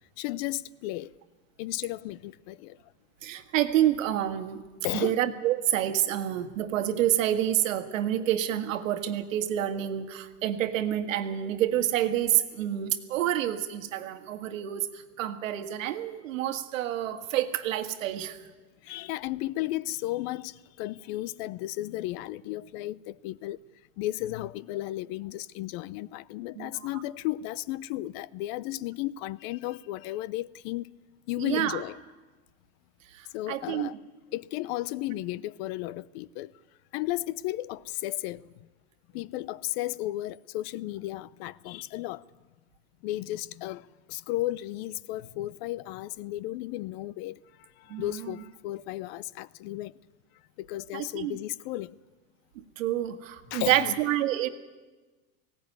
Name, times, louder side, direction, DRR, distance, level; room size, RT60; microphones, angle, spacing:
voice 1, 0.2-1.1 1.6-2.8 4.8-5.2 18.8-23.6 24.0-30.9 31.3-32.0 33.3-34.0 34.3-36.5 36.9-38.5 39.1-42.2 43.0-49.9 50.6-52.0 53.5-54.0, left 16 dB, 50° left, 0.6 m, -34 dB
voice 2, 3.2-4.6 4.9-18.4 26.6-27.0 31.4-31.8 33.1-33.9 47.9-48.4 50.9-51.4 52.6-54.5, right 12 dB, 90° right, 1.8 m, -28 dB
18.5 x 17.0 x 9.6 m
supercardioid pair, 140°, 38 cm